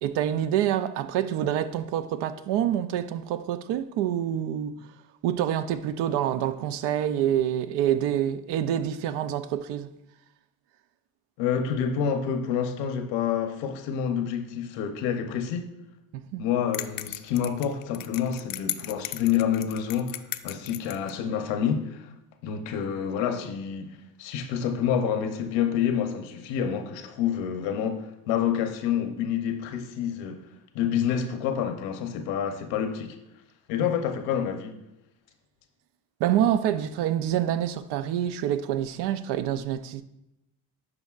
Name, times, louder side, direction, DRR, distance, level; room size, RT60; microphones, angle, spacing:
voice 1, 0.0-4.9 5.2-9.9 16.1-16.4 33.8-33.9 36.2-40.0, right 10 dB, 70° right, 0.6 m, -27 dB
voice 2, 11.4-15.7 16.4-22.1 22.4-30.4 30.7-33.2 33.7-34.8, left 8 dB, 80° left, 0.9 m, -28 dB
sound 1, 16.7-21.2, left 14 dB, 50° left, 0.4 m, -36 dB
9.7 x 5.3 x 2.4 m
cardioid pair, 105°, 44 cm